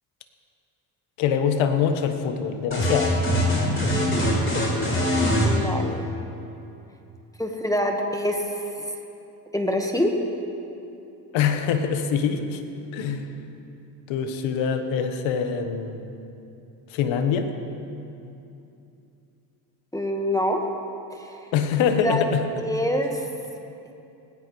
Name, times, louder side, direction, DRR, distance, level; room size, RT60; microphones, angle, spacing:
voice 1, 1.2-3.2 11.3-12.6 12.9-13.2 14.1-16.1 16.9-17.5 21.5-22.5, left 7 dB, 75° left, 7 dB, 1.4 m, -24 dB
sound 1, 2.7-5.5, equal, 25° left, 4.2 m, -22 dB
voice 2, 5.4-6.1 7.4-8.9 9.5-10.2 19.9-20.6 21.1-21.5 22.0-22.2 22.6-23.3, equal, 5° left, 3 dB, 1.4 m, -26 dB
19.0 x 16.5 x 3.2 m, 2.7 s
supercardioid pair, 75°, 47 cm